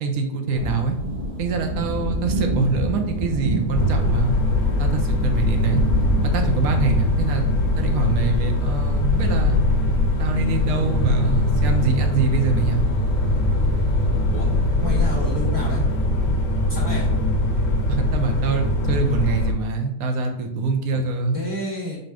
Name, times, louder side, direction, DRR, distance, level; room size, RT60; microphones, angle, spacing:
voice 1, 0.0-1.0 1.4-4.3 4.8-5.8 6.2-7.5 7.8-9.6 10.2-12.8 17.9-21.4, right 4 dB, 65° right, 4 dB, 0.9 m, -24 dB
sound 1, 0.5-16.1, right 1 dB, 85° right, 2.1 m, -30 dB
sound 2, 3.7-19.5, left 1 dB, 70° left, 1.3 m, -21 dB
voice 2, 14.8-15.8 16.7-17.1 20.9-21.0 21.3-22.0, left 1 dB, 15° right, -5 dB, 0.7 m, -29 dB
5.1 x 2.1 x 4.8 m, 0.77 s
omnidirectional pair, 2.0 m